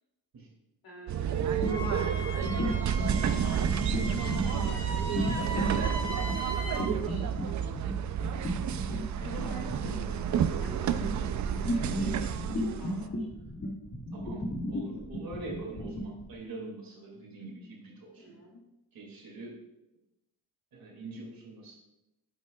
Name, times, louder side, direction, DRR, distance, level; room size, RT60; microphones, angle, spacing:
voice 1, 0.8-3.9 4.1-5.1 5.8-8.5 9.2-13.3 18.2-18.6, left 1 dB, 75° left, 0 dB, 2.4 m, -48 dB
sound 1, 1.1-13.1, right 8 dB, 55° right, 0.4 m, -30 dB
sound 2, 1.5-16.3, equal, 45° left, 1.8 m, -35 dB
Wind instrument woodwind instrument, 1.6-6.9, equal, 15° left, 1.7 m, -39 dB
voice 2, 14.1-18.3 18.9-19.5 20.7-21.8, right 3 dB, 70° right, 0 dB, 2.3 m, -44 dB
9.2 x 7.5 x 2.3 m, 0.91 s
wide cardioid pair, 135°, 36 cm